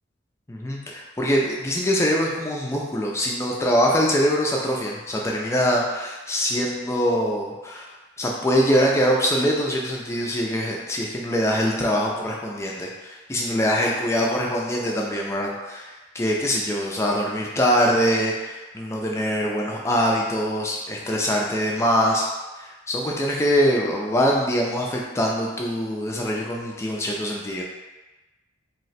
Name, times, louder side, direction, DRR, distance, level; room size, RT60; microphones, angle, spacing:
voice 1, 0.5-22.3 22.6-27.6, equal, 15° left, -2 dB, 0.4 m, -23 dB
2.8 x 2.1 x 4.0 m, 1.2 s
head